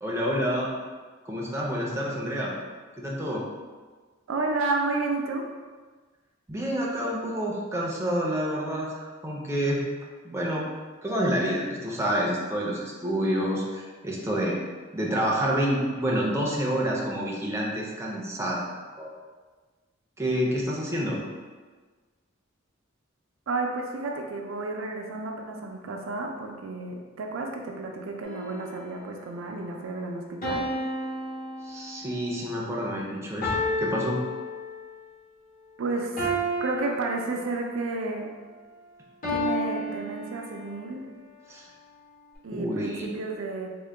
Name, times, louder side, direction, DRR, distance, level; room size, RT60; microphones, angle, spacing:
voice 1, 0.0-0.7 1.3-2.5 3.0-3.5 6.5-9.8 10.2-10.6 11.0-14.6 14.9-18.6 19.0-19.1 20.2-21.2 31.6-33.5 33.8-34.2 41.5-41.7 42.5-43.1, equal, 15° right, -3 dB, 0.5 m, -28 dB
voice 2, 4.3-5.5 23.5-30.7 35.8-36.3 36.6-38.3 39.3-41.1 42.4-43.7, right 3 dB, 80° right, 2 dB, 0.4 m, -31 dB
sound 1, 28.2-29.1 30.4-32.3 33.4-35.0 36.2-37.8 39.2-40.9, equal, 45° left, 1.0 m, -31 dB
3.7 x 2.1 x 3.3 m, 1.4 s
head